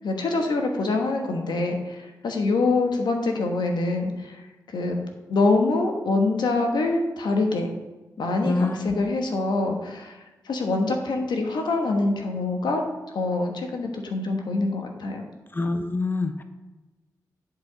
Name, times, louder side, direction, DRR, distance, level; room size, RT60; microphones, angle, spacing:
voice 1, 0.0-4.4 4.7-5.0 5.3-7.7 8.2-10.2 10.4-12.8 13.1-15.3, left 3 dB, 80° left, 3 dB, 1.3 m, -25 dB
voice 2, 8.4-8.9 15.5-16.4, left 2 dB, 30° left, 8 dB, 0.8 m, -26 dB
10.5 x 4.9 x 5.1 m, 1.2 s
cardioid pair, 45°, 7 cm